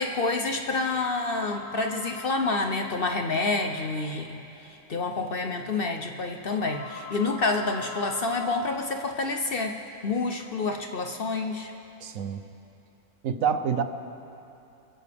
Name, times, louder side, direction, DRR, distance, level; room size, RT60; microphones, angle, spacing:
voice 1, 0.0-4.4 4.9-9.7 10.0-11.7, left 3 dB, 50° left, 4 dB, 0.8 m, -28 dB
sound 1, 1.1-9.5, left 3 dB, 20° left, 4.9 m, -44 dB
voice 2, 12.0-12.4 13.2-13.8, right 7 dB, 70° right, 9 dB, 1.1 m, -26 dB
27.0 x 15.0 x 3.5 m, 2.8 s
omnidirectional pair, 1.5 m